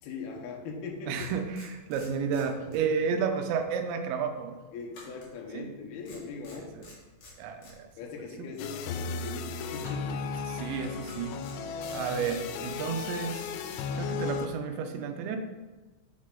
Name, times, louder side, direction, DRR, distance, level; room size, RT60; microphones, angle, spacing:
voice 1, 0.0-1.3 4.7-6.8 8.0-10.3, left 4 dB, 75° left, 1 dB, 2.5 m, -40 dB
sound 1, 0.7-0.8 1.2-3.2 3.5-3.7 4.9-5.8 6.0-7.8 9.8-10.3 11.0-12.8, left 2 dB, 50° left, 3.0 m, -52 dB
voice 2, 1.1-4.6 5.5-5.6 6.5-6.9 7.4-7.9 8.4-8.5 10.5-11.4 11.9-13.5 14.0-15.4, right 6 dB, 80° right, 6 dB, 2.9 m, -32 dB
sound 2, 8.6-14.5, left 5 dB, 90° left, 3.0 m, -35 dB
7.2 x 6.3 x 3.7 m, 1.2 s
omnidirectional pair, 5.2 m